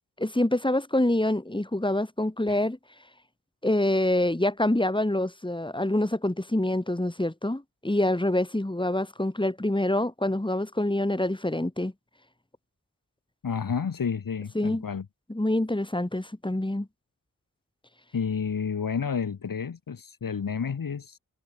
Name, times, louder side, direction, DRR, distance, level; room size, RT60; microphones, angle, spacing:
voice 1, 0.2-2.8 3.6-11.9 14.5-14.8 15.3-16.9, left 1 dB, 15° left, 7.9 m, -26 dB
voice 2, 13.4-15.0 18.1-21.2, left 6 dB, 70° left, 2.7 m, -30 dB
wide cardioid pair, 70°, 35 cm